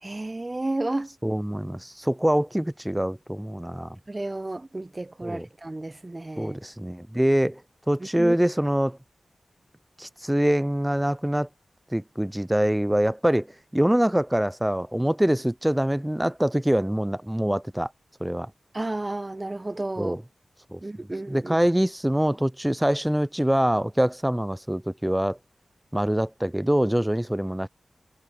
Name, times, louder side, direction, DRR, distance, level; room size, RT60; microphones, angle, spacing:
voice 1, 0.0-1.1 4.1-6.6 8.0-8.4 18.7-20.2 20.8-21.6, right 2 dB, 30° right, 0.9 m, -32 dB
voice 2, 1.2-3.9 5.2-5.5 6.4-7.6 7.9-9.0 10.0-11.5 11.9-13.5 13.7-17.9 18.2-18.5 20.0-20.2 20.7-20.8 21.3-25.4 25.9-27.7, right 1 dB, 10° right, 0.5 m, -24 dB
cardioid pair, 45°, 0 cm